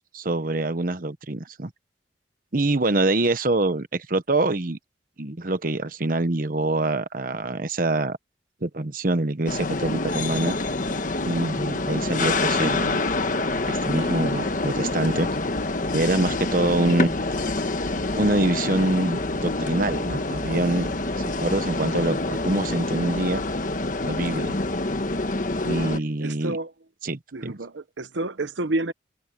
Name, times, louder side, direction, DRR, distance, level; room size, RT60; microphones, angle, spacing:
voice 1, 0.0-1.7 2.5-4.8 5.2-8.2 8.6-10.5 11.2-13.0 13.7-15.3 15.9-17.2 18.1-23.4 24.1-24.5 25.7-26.6 27.0-27.5, right 2 dB, 50° right, 1.1 m, -25 dB
sound 1, 9.5-26.0, left 2 dB, 45° left, 1.3 m, -26 dB
sound 2, 11.0-16.6, left 2 dB, 70° left, 1.6 m, -43 dB
voice 2, 26.2-26.7 27.3-28.9, right 2 dB, 90° right, 1.0 m, -29 dB
head